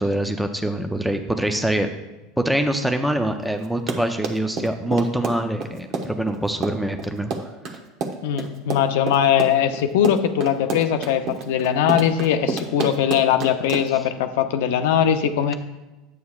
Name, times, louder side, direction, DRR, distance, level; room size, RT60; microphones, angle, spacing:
voice 1, 0.0-1.9 2.4-7.8, right 1 dB, 5° right, 5 dB, 0.5 m, -24 dB
Run, 3.6-14.1, right 4 dB, 50° right, 0.9 m, -29 dB
voice 2, 8.2-15.5, left 9 dB, 80° left, 9 dB, 0.6 m, -20 dB
9.2 x 8.3 x 2.4 m, 1.1 s
supercardioid pair, 120°, 0 cm